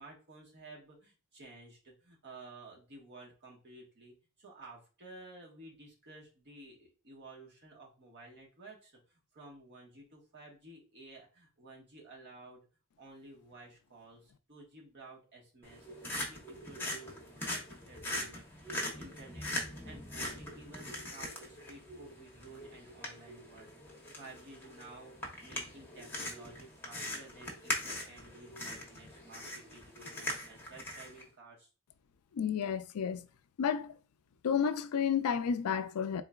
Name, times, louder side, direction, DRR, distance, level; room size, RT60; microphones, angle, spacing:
voice 1, 0.0-12.6 13.0-31.7, right 2 dB, 50° right, 1.3 m, -54 dB
sound 1, 15.6-31.2, left 1 dB, 10° left, 0.8 m, -41 dB
voice 2, 32.3-33.3 33.6-33.9 34.4-36.2, left 7 dB, 85° left, 0.4 m, -31 dB
4.0 x 3.7 x 2.3 m
head